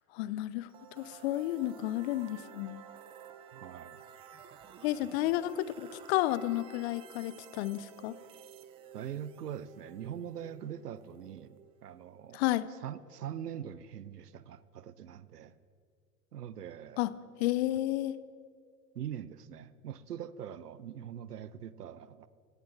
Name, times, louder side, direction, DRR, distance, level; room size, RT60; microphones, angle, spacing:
voice 1, 0.1-0.7 1.0-2.8 4.8-8.1 12.3-12.7 17.0-17.1 17.4-18.1, left 15 dB, 45° left, 16 dB, 0.7 m, -31 dB
sound 1, 0.7-12.5, right 8 dB, 15° right, 0.3 m, -53 dB
voice 2, 3.5-4.0 8.9-12.4 12.8-15.6 16.3-17.0 18.9-22.3, right 9 dB, 80° right, 17 dB, 0.7 m, -43 dB
17.5 x 16.0 x 3.9 m, 2.2 s
figure-of-eight pair, 90°, 46 cm